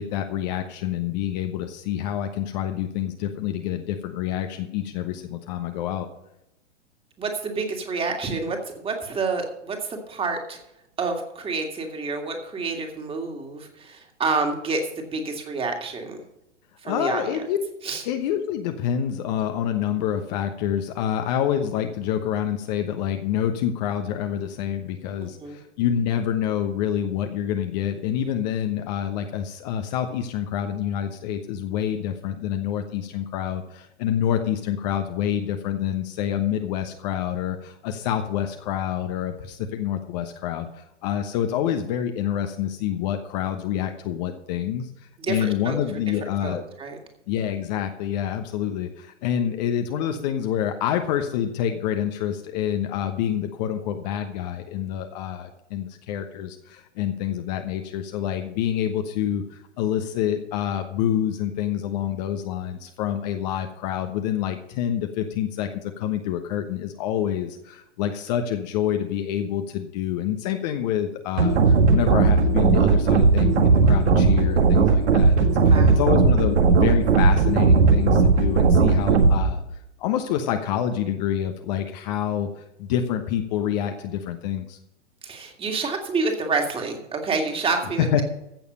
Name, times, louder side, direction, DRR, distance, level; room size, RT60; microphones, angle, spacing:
voice 1, 0.0-6.1 16.8-17.6 18.0-44.9 45.3-46.6 47.3-79.6 80.0-84.8 88.0-88.2, left 10 dB, 35° left, 6 dB, 1.1 m, -27 dB
voice 2, 7.2-10.6 11.0-16.2 16.8-17.3 17.8-18.0 25.2-25.6 45.2-45.8 46.4-47.0 75.7-76.0 85.2-88.2, right 4 dB, 15° right, 3 dB, 2.2 m, -28 dB
sound 1, 71.4-79.4, right 4 dB, 65° right, 1.7 m, -17 dB
15.0 x 7.1 x 5.5 m, 0.84 s
figure-of-eight pair, 110°, 36 cm